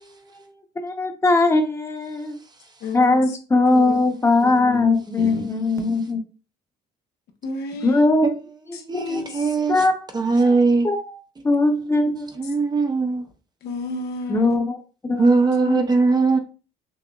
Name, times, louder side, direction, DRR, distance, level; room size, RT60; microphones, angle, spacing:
voice 1, 0.0-2.4 2.9-6.3 7.8-8.4 8.7-9.2 9.7-10.6 10.8-12.4 14.3-14.8 15.0-15.8, left 2 dB, 15° left, 0.9 m, -21 dB
voice 2, 2.8-3.2 3.7-3.9 4.4-4.8 5.2-5.5 7.4-8.1 8.7-9.5 9.8-9.9 13.6-14.6, left 3 dB, 75° left, 1.0 m, -32 dB
voice 3, 8.9-9.7 10.1-10.9 12.4-13.2 15.2-16.4, right 3 dB, 25° right, 0.7 m, -19 dB
6.1 x 2.7 x 2.4 m
cardioid pair, 110°, 17 cm